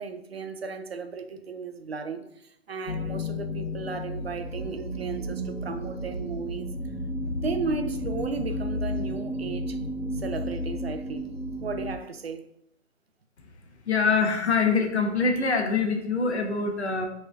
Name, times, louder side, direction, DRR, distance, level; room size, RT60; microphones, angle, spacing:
voice 1, 0.0-6.7 7.3-9.8 10.1-11.3 11.6-12.5, right 4 dB, 50° right, 0.4 m, -35 dB
sound 1, 2.9-12.0, left 1 dB, 80° left, 0.9 m, -32 dB
voice 2, 13.9-17.1, left 4 dB, 55° left, 0.9 m, -24 dB
6.7 x 3.2 x 2.4 m
hypercardioid pair, 165°, 40 cm